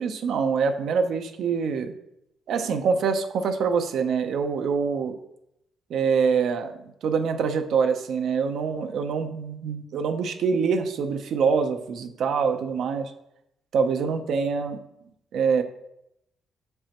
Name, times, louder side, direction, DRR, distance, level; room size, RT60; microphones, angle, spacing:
voice 1, 0.0-1.9 2.5-5.1 5.9-6.7 7.0-13.1 13.7-14.8 15.3-15.6, right 5 dB, 70° right, 7 dB, 0.6 m, -25 dB
7.1 x 5.4 x 2.9 m, 0.81 s
cardioid pair, 90°, 0 cm